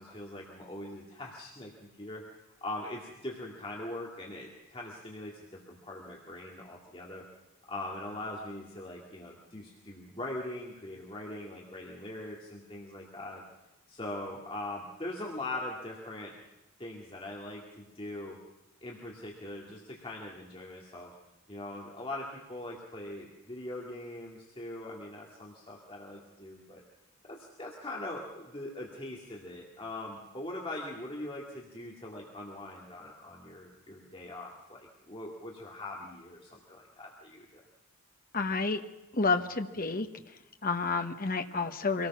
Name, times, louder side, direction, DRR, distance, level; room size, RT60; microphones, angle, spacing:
voice 1, 0.0-2.2 2.6-7.2 7.7-13.4 13.9-16.3 16.8-18.4 18.8-21.1 21.5-26.8 27.3-37.6, left 1 dB, 25° left, -2 dB, 2.2 m, -41 dB
voice 2, 38.3-38.8 39.1-40.1 40.6-42.1, left 4 dB, 40° left, 7 dB, 1.1 m, -30 dB
24.5 x 18.5 x 6.1 m, 1.0 s
head